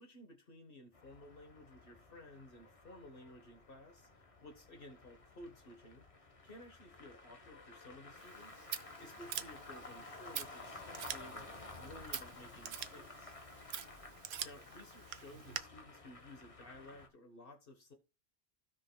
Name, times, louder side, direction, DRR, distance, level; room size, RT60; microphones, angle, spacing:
voice 1, 0.0-8.7 9.0-13.3 14.4-17.9, left 1 dB, 60° left, 4 dB, 1.4 m, -55 dB
sound 1, 0.9-17.1, left 2 dB, 35° left, 1.2 m, -53 dB
Scissors, 8.2-15.6, right 9 dB, 75° right, 0.9 m, -46 dB
16.0 x 5.4 x 2.3 m, 0.29 s
omnidirectional pair, 1.1 m